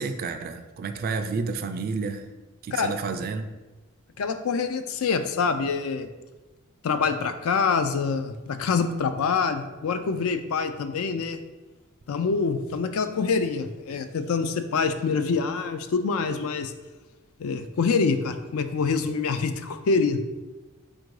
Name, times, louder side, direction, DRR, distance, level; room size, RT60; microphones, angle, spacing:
voice 1, 0.0-2.3 2.6-3.5, right 4 dB, 45° right, 8 dB, 0.3 m, -30 dB
voice 2, 4.2-6.1 6.8-11.4 12.1-16.7 17.4-20.2, left 5 dB, 70° left, 9 dB, 0.4 m, -25 dB
4.5 x 2.5 x 4.6 m, 1.2 s
head